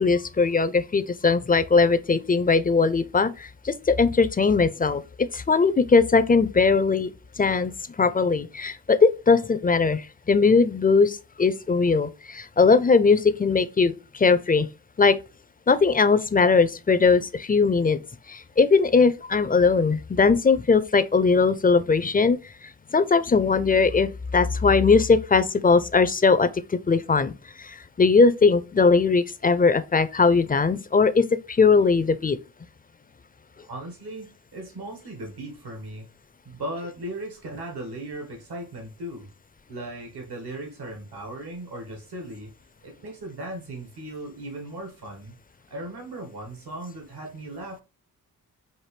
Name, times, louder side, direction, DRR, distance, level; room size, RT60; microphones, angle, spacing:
voice 1, 0.0-7.1 7.4-14.7 15.0-15.2 15.7-18.0 18.3-32.4, left 4 dB, 20° left, 0.5 m, -20 dB
voice 2, 33.6-36.1 36.4-39.3 39.7-42.5 42.8-45.4 45.7-47.8, right 1 dB, 75° right, 1.6 m, -37 dB
5.8 x 2.6 x 3.2 m
cardioid pair, 55°, 39 cm